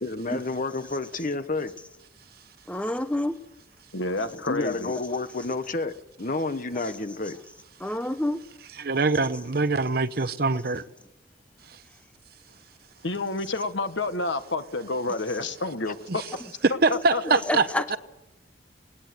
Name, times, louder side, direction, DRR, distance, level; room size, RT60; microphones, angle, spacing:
voice 1, 0.0-1.7 4.3-7.4 15.9-16.0, left 3 dB, 45° left, 1.1 m, -30 dB
voice 2, 2.7-3.4 4.2-4.4 4.8-4.9 6.7-6.9 7.8-8.4 15.1-15.2 17.4-18.0, left 1 dB, 5° left, 0.8 m, -29 dB
voice 3, 3.9-4.9 13.0-16.0 16.9-17.6, left 2 dB, 75° left, 1.7 m, -29 dB
voice 4, 8.8-10.8 16.6-17.6 17.9-18.0, right 3 dB, 55° right, 0.9 m, -23 dB
19.0 x 19.0 x 7.9 m
head